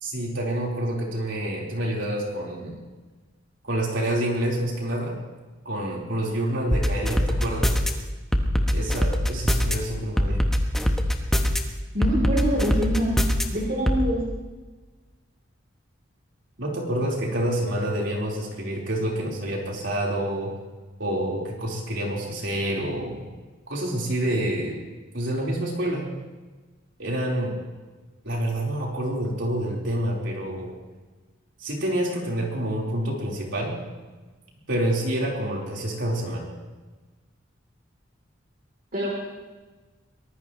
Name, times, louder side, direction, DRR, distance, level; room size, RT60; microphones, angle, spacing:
voice 1, 0.0-2.7 3.6-5.2 5.6-7.8 8.7-10.4 16.6-20.5 21.0-23.2 23.7-24.8 25.1-26.1 27.0-27.6 28.2-30.7 31.6-33.8 34.7-36.5, right 1 dB, 70° right, -2 dB, 4.1 m, -27 dB
sound 1, 6.7-7.9 8.3-9.7 10.2-11.6 12.0-13.4 13.9-14.0, equal, ahead, 1.1 m, -22 dB
voice 2, 11.9-13.2 13.5-14.2 38.9-39.1, equal, 45° right, -2 dB, 3.3 m, -25 dB
23.5 x 19.0 x 3.1 m, 1.3 s
head